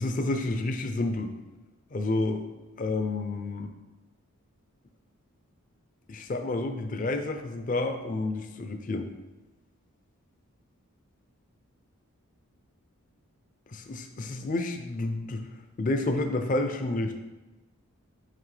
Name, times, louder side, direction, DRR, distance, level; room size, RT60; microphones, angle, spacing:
voice 1, 0.0-1.3 1.9-2.4 2.8-3.7 6.1-9.1 13.7-15.4 15.8-17.2, left 2 dB, 35° left, 6 dB, 0.4 m, -29 dB
5.8 x 5.1 x 3.2 m, 1.1 s
head